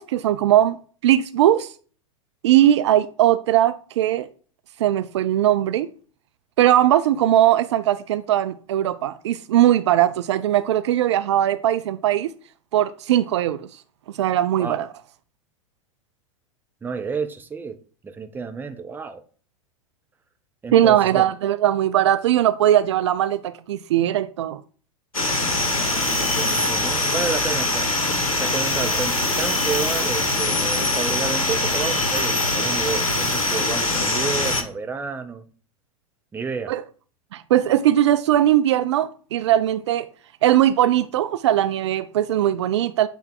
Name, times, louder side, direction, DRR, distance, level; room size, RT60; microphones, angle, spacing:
voice 1, 0.0-1.7 2.4-4.3 4.8-5.9 6.6-12.3 12.7-13.7 14.2-14.9 20.7-24.6 36.7-36.8 37.3-40.1 40.4-43.1, right 12 dB, 55° right, 0.4 m, -19 dB
voice 2, 16.8-17.8 18.0-19.2 20.6-21.3 26.1-35.4 36.3-36.7, right 5 dB, 10° right, 0.6 m, -30 dB
sound 1, 25.1-34.6, left 2 dB, 80° left, 1.1 m, -23 dB
8.2 x 3.5 x 3.7 m
figure-of-eight pair, 95°, 18 cm